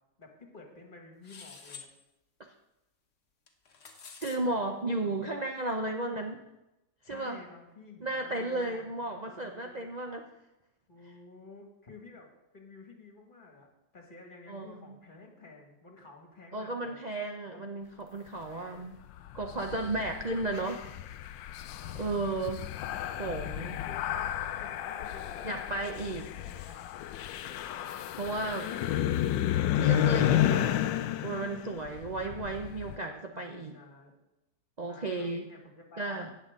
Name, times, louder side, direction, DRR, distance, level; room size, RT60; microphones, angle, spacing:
voice 1, 0.2-1.9 4.4-4.7 7.0-9.9 10.9-13.7 13.9-17.0 17.5-17.6 18.4-18.9 19.5-20.3 21.8-22.2 23.1-24.3 24.6-25.7 25.9-26.1 26.4-26.8 27.9-29.1 33.3-34.2 34.8-36.1, left 3 dB, 30° left, 1 dB, 1.9 m, -52 dB
sound 1, 1.2-1.9 3.5-4.4, left 5 dB, 45° left, 1.3 m, -48 dB
voice 2, 4.2-6.4 7.0-7.4 8.0-10.3 14.5-15.0 16.5-19.0 19.3-20.9 21.4-21.5 22.0-22.6 23.2-23.8 25.4-26.3 28.1-28.7 29.7-30.8 31.2-33.7 34.8-35.5 36.0-36.3, right 2 dB, 90° right, 3 dB, 0.3 m, -34 dB
sound 2, 19.1-33.0, left 11 dB, 85° left, 1.3 m, -32 dB
17.5 x 7.2 x 3.7 m, 0.94 s
omnidirectional pair, 2.0 m